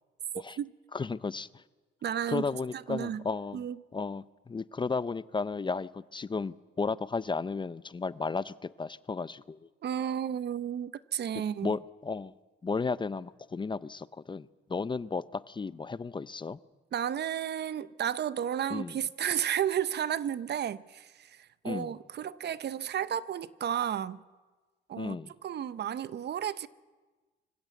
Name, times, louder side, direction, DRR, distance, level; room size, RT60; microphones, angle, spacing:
voice 1, 0.3-0.7 2.0-2.5 2.7-3.2 3.5-3.8 9.8-11.8 16.9-24.2 24.9-26.7, right 9 dB, 55° right, 0.8 m, -33 dB
voice 2, 0.9-1.6 2.3-3.6 3.9-9.7 11.6-12.3 12.6-16.6 18.7-18.9 21.6-21.9 25.0-25.3, left 4 dB, 25° left, 0.6 m, -34 dB
24.5 x 15.5 x 8.3 m
cardioid pair, 90°, 20 cm